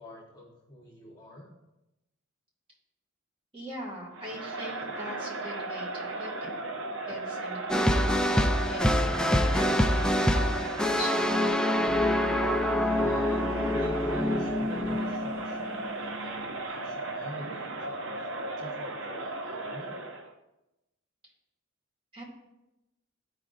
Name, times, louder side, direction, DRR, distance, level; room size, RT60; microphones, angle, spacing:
voice 1, 0.0-1.5 12.9-20.0, left 1 dB, 20° left, -3 dB, 1.2 m, -45 dB
voice 2, 3.5-6.6 7.1-8.1 8.4-11.2 22.1-22.2, equal, 25° right, -4 dB, 2.4 m, -41 dB
Crowd, 4.2-20.3, right 2 dB, 70° right, 0.8 m, -36 dB
sound 1, 7.7-15.9, left 1 dB, 5° left, 0.3 m, -26 dB
sound 2, 11.9-15.7, equal, 45° right, 1.3 m, -40 dB
13.5 x 4.8 x 2.6 m, 0.95 s
head